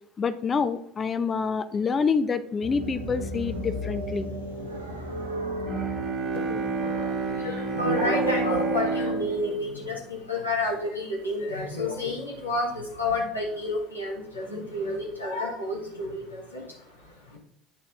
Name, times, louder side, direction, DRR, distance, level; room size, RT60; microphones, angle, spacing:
voice 1, 0.2-4.3, left 5 dB, 30° left, 14 dB, 0.6 m, -27 dB
sound 1, 2.6-8.9, equal, 80° right, 0.9 m, -35 dB
Bowed string instrument, 5.7-10.9, right 4 dB, 40° right, 1.2 m, -30 dB
voice 2, 6.3-17.4, left 1 dB, 90° left, -4 dB, 1.7 m, -30 dB
8.7 x 4.2 x 3.6 m, 0.74 s
figure-of-eight pair, 65°, 0 cm